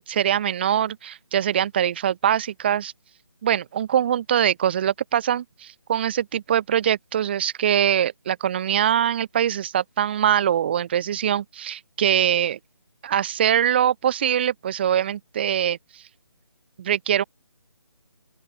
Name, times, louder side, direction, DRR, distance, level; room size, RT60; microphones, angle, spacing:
voice 1, 0.0-2.9 3.4-12.6 13.0-16.0 16.8-17.2, right 10 dB, 20° right, 1.8 m, -23 dB
open air
figure-of-eight pair, 170°, 16 cm